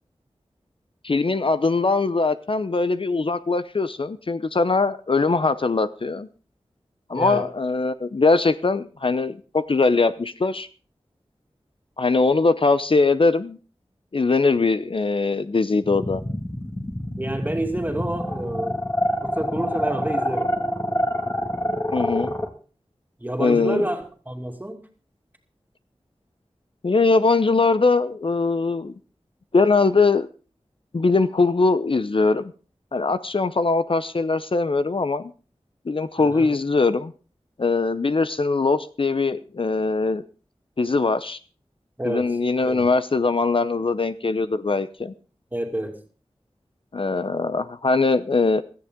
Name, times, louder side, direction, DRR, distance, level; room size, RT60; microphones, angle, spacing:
voice 1, 1.0-6.3 7.1-10.7 12.0-13.6 14.1-16.2 21.9-22.3 23.4-23.9 26.8-28.9 29.5-30.3 30.9-32.5 32.9-35.3 35.9-37.1 37.6-40.2 40.8-41.4 42.1-45.1 46.9-48.6, left 3 dB, 55° left, 0.7 m, -21 dB
voice 2, 7.1-7.5 17.2-18.8 19.2-20.5 23.2-24.9 36.2-36.5 42.0-42.9 45.5-46.0, right 1 dB, 15° right, 2.6 m, -29 dB
sound 1, 15.8-22.5, equal, 25° left, 2.1 m, -26 dB
16.5 x 13.5 x 3.7 m
wide cardioid pair, 75°, 11 cm